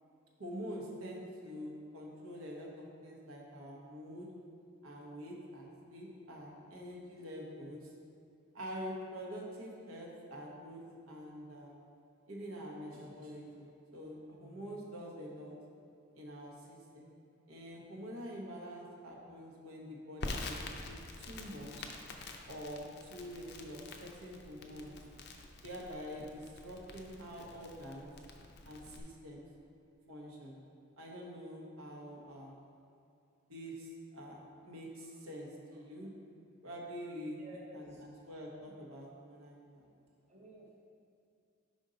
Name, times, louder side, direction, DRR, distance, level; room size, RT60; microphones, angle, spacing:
voice 1, 0.4-4.3 4.8-7.9 8.5-11.8 12.3-15.5 16.1-17.1 17.5-21.9 22.5-24.9 25.6-28.1 28.7-29.4 30.1-30.6 31.0-32.6 33.5-36.1 36.6-39.9, equal, 85° right, -2 dB, 1.0 m, -46 dB
Crackle, 20.2-29.0, left 3 dB, 50° left, 0.4 m, -47 dB
voice 2, 37.4-38.0 40.3-40.8, equal, 30° right, -4 dB, 0.7 m, -52 dB
5.3 x 5.2 x 3.8 m, 2.4 s
head